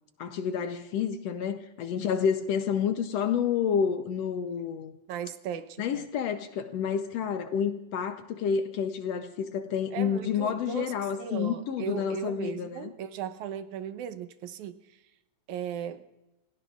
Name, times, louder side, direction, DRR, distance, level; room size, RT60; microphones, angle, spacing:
voice 1, 0.2-4.9 5.8-12.9, left 7 dB, 70° left, 1.7 m, -29 dB
voice 2, 5.1-6.0 9.9-10.9 11.2-15.0 15.5-16.1, right 9 dB, 80° right, 2.2 m, -37 dB
28.5 x 17.5 x 2.5 m
omnidirectional pair, 3.5 m